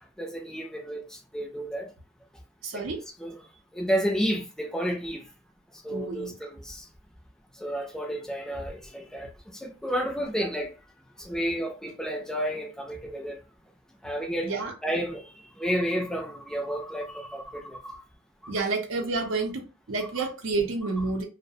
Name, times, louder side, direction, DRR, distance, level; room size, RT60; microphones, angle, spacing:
voice 1, 0.2-1.9 2.7-2.8 3.2-3.3 3.7-5.2 5.8-6.9 7.6-10.7 11.2-13.4 14.0-14.5 14.8-18.0 18.4-18.5 20.2-20.3, equal, 5° left, 0.3 m, -31 dB
voice 2, 2.6-3.0 5.9-6.5 14.4-14.7 18.5-21.2, right 3 dB, 90° right, 0.6 m, -30 dB
2.3 x 2.0 x 2.6 m
head